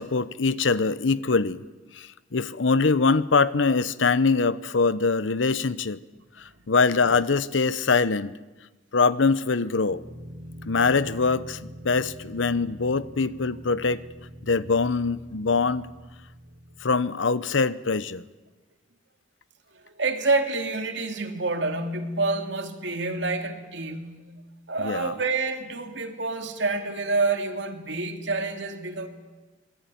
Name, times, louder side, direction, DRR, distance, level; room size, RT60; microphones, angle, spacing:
voice 1, 0.0-1.6 1.9-6.0 6.4-8.4 8.9-10.0 10.7-11.6 11.8-14.0 14.5-15.8 16.8-18.2 24.8-25.1, left 4 dB, 85° left, 17 dB, 0.8 m, -23 dB
sound 1, 9.9-17.1, equal, 45° left, 6.0 m, -44 dB
voice 2, 19.8-24.4 24.7-29.1, right 3 dB, 70° right, 6 dB, 2.7 m, -28 dB
25.5 x 20.5 x 9.3 m, 1.2 s
head